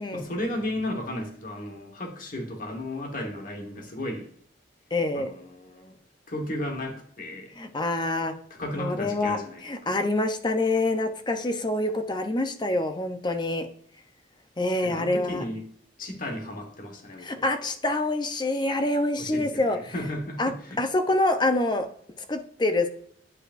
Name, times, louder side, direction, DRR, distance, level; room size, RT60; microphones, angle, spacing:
voice 1, 0.0-4.3 5.1-5.9 6.3-7.5 8.5-10.0 14.8-15.7 16.0-17.5 19.2-20.8, left 1 dB, 50° left, 2 dB, 1.3 m, -34 dB
voice 2, 4.9-5.3 7.6-8.3 8.8-9.4 9.6-13.7 14.6-15.4 17.2-19.8 20.4-20.5 20.8-21.9 22.3-22.9, left 2 dB, 25° left, 7 dB, 0.7 m, -26 dB
9.6 x 5.2 x 2.6 m, 0.63 s
head